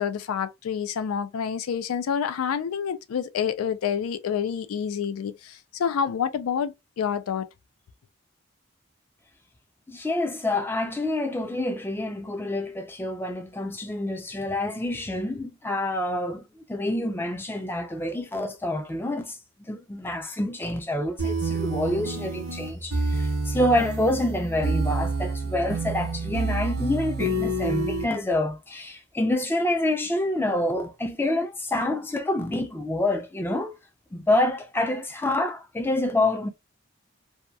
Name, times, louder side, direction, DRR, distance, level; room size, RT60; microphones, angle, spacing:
voice 1, 0.0-7.5, left 7 dB, 90° left, 0.4 m, -28 dB
voice 2, 9.9-16.4 16.7-19.4 19.7-33.7 34.1-36.5, left 1 dB, 10° left, 0.3 m, -27 dB
sound 1, 21.2-28.0, right 2 dB, 75° right, 0.8 m, -28 dB
2.8 x 2.2 x 2.2 m
head